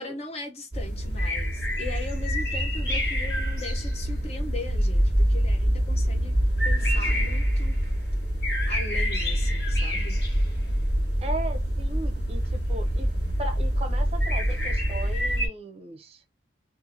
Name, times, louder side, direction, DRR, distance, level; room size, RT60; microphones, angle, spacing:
voice 1, 0.0-6.4 6.6-7.8 8.7-10.2, left 3 dB, 35° left, 0.6 m, -39 dB
sound 1, 0.7-15.5, equal, 65° left, 1.4 m, -25 dB
voice 2, 11.2-13.1 13.4-16.2, right 1 dB, 30° right, 0.5 m, -37 dB
2.6 x 2.5 x 2.6 m
head